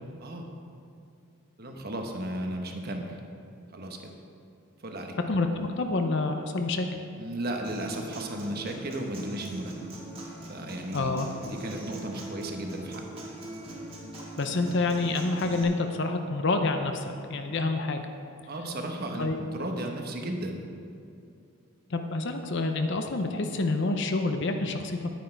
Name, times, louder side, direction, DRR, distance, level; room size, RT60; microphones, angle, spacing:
voice 1, 1.6-3.2 3.7-4.1 4.8-5.2 7.2-9.7 10.5-11.1 11.4-13.0 18.5-20.6, right 1 dB, 45° right, 3 dB, 1.1 m, -35 dB
voice 2, 5.3-6.9 10.9-11.3 14.4-18.0 19.2-19.4 21.9-25.1, left 3 dB, 55° left, 6 dB, 0.6 m, -28 dB
Human voice / Acoustic guitar, 7.6-15.6, right 1 dB, 25° right, 1.7 m, -41 dB
10.5 x 9.3 x 4.5 m, 2.6 s
head